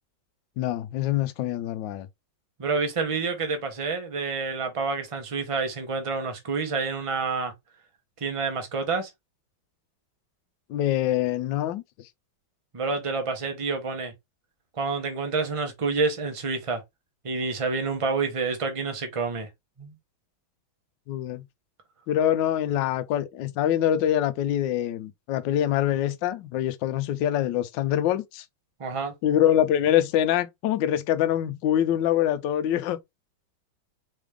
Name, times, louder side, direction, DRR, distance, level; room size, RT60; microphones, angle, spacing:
voice 1, 0.6-2.1 10.7-11.8 21.1-21.4 22.1-28.4 29.2-33.0, left 11 dB, 75° left, 1.2 m, -24 dB
voice 2, 2.6-7.5 8.2-9.1 12.7-14.1 14.8-16.8 17.2-19.5 19.8-19.9 28.8-29.1, right 4 dB, 35° right, 0.5 m, -28 dB
4.0 x 3.4 x 3.3 m
omnidirectional pair, 2.2 m